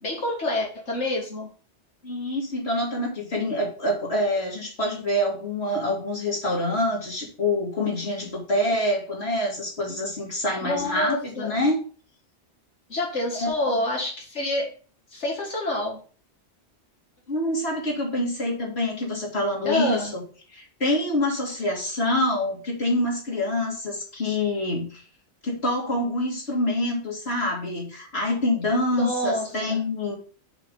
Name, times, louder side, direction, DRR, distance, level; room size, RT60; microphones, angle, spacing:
voice 1, 0.0-1.5 10.6-11.6 12.9-14.7 15.1-16.0 19.6-20.1 28.9-29.8, left 1 dB, 80° left, -1 dB, 2.1 m, -27 dB
voice 2, 2.0-11.8 13.3-13.8 17.3-20.2 20.5-25.0 25.4-30.1, left 1 dB, 65° left, -3 dB, 2.6 m, -26 dB
6.2 x 4.9 x 5.3 m, 0.40 s
omnidirectional pair, 1.2 m